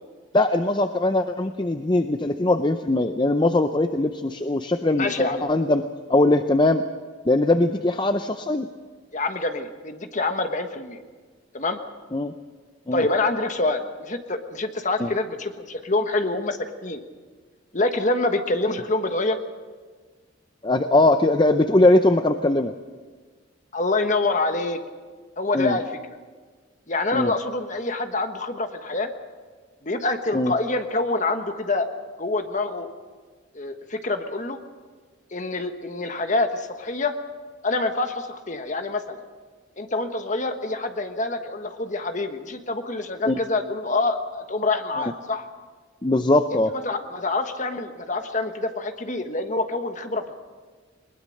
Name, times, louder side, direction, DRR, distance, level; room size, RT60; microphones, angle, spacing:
voice 1, 0.3-5.8 6.1-6.8 7.3-8.7 12.1-12.3 12.9-13.1 15.0-15.1 20.6-22.7 25.5-25.8 27.1-27.3 30.3-30.5 43.3-43.4 46.0-46.7, left 2 dB, 25° left, 8 dB, 0.6 m, -21 dB
voice 2, 5.0-5.4 9.1-11.0 11.5-11.8 12.9-17.0 17.7-19.4 23.7-24.8 25.4-25.8 26.9-29.1 29.8-31.9 32.2-32.9 33.5-34.6 35.3-37.1 37.6-39.2 39.8-45.5 46.7-50.3, left 2 dB, 40° left, 7 dB, 1.3 m, -26 dB
21.0 x 20.0 x 6.5 m, 1.5 s
head